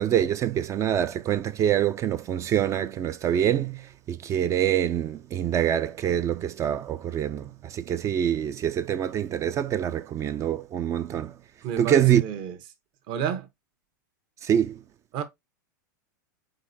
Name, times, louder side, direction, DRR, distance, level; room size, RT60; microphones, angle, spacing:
voice 1, 0.0-11.3 11.8-12.2 14.4-14.8, right 10 dB, 30° right, 0.3 m, -25 dB
voice 2, 11.6-12.6 13.1-13.5 15.1-15.2, right 8 dB, 45° right, 1.0 m, -30 dB
4.3 x 3.8 x 2.6 m
hypercardioid pair, 110°, 11 cm